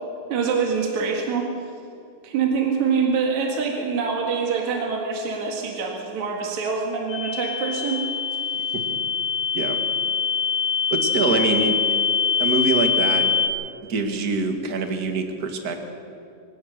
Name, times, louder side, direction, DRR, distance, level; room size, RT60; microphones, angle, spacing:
voice 1, 0.3-1.5 2.2-8.0, right 5 dB, 65° right, 1 dB, 3.2 m, -25 dB
sound 1, 7.1-13.5, left 6 dB, 75° left, 3.4 m, -24 dB
voice 2, 10.9-11.8 12.4-13.3 13.9-15.8, right 3 dB, 35° right, 5 dB, 1.8 m, -24 dB
24.5 x 18.0 x 6.6 m, 2.5 s
omnidirectional pair, 3.6 m